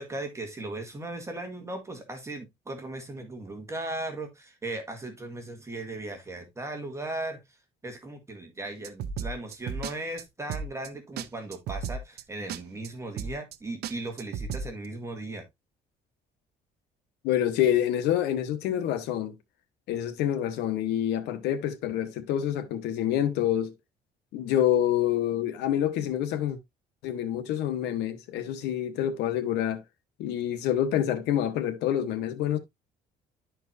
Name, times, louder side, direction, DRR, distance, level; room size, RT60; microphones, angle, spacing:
voice 1, 0.0-7.4 7.8-15.4, right 2 dB, 15° right, 1.9 m, -37 dB
sound 1, 8.8-9.9 10.2-10.3 10.5-10.9 11.2-11.3 11.5-12.2 12.5-12.6 12.8-12.9 13.2-13.6 13.8-14.7, right 6 dB, 70° right, 0.8 m, -34 dB
voice 2, 17.2-19.3 19.9-23.7 24.3-26.6 27.0-29.8 30.2-32.6, left 11 dB, 85° left, 1.1 m, -27 dB
11.5 x 4.5 x 2.5 m
cardioid pair, 110°, 17 cm